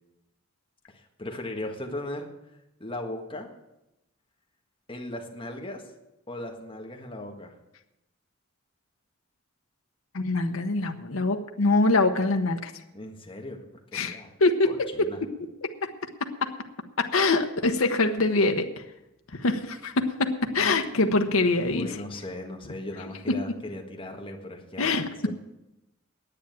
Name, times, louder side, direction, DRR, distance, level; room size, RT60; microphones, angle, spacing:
voice 1, 0.9-2.3 2.8-3.5 4.9-5.8 6.3-7.5 12.9-13.6 13.9-14.3 14.6-15.2 21.7-25.3, left 1 dB, 25° left, 2 dB, 1.6 m, -37 dB
voice 2, 10.1-12.7 13.9-15.1 15.6-15.7 16.4-16.5 17.0-18.8 19.3-21.9 23.3-23.4 24.8-25.1, left 3 dB, 85° left, 5 dB, 0.9 m, -24 dB
10.0 x 8.8 x 8.9 m, 0.93 s
head